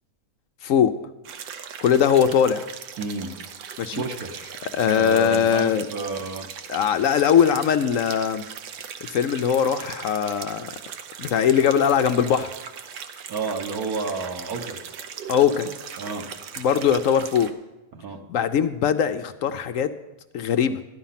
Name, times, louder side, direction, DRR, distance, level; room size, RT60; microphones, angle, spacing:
voice 1, 0.6-0.9 1.8-2.6 3.8-4.0 4.7-5.9 6.7-8.4 9.0-10.7 11.2-12.5 15.3-15.7 16.6-17.5 18.3-19.9 20.3-20.8, left 8 dB, 65° left, 10 dB, 0.8 m, -21 dB
sound 1, 1.2-17.5, right 7 dB, 90° right, 1.4 m, -39 dB
voice 2, 3.0-3.3 3.9-4.6 5.0-6.5 13.3-14.8 16.0-16.2 17.9-18.2, right 4 dB, 65° right, 2 dB, 1.5 m, -30 dB
13.0 x 10.5 x 5.7 m, 1.0 s
omnidirectional pair, 1.8 m